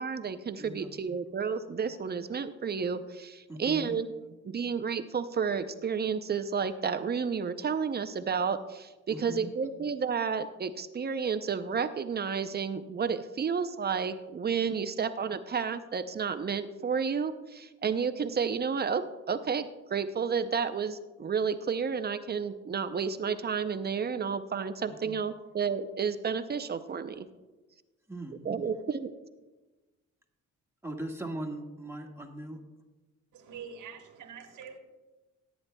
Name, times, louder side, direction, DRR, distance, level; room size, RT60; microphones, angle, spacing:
voice 1, 0.0-4.1 4.4-27.3 28.4-29.1, right 6 dB, 35° right, 10 dB, 0.5 m, -31 dB
voice 2, 0.6-0.9 3.5-4.0 9.1-9.5 24.9-25.2 28.1-28.5 30.8-32.6, right 1 dB, 10° right, 1 dB, 1.6 m, -39 dB
voice 3, 33.3-34.8, right 6 dB, 75° right, 5 dB, 1.3 m, -45 dB
18.0 x 9.2 x 2.2 m, 1.2 s
cardioid pair, 90°, 30 cm